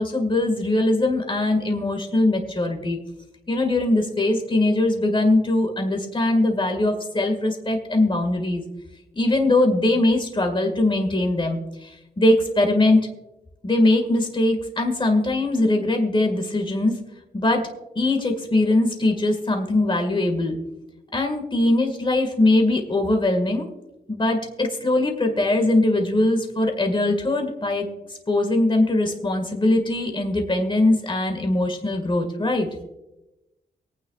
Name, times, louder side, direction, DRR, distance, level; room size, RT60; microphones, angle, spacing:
voice 1, 0.0-3.0 3.5-8.6 9.1-13.0 13.6-17.0 17.3-17.7 18.0-20.6 21.1-23.7 24.1-27.9 28.3-32.7, left 2 dB, 25° left, 4 dB, 1.9 m, -21 dB
23.5 x 9.2 x 2.4 m, 0.95 s
cardioid pair, 80°, 18 cm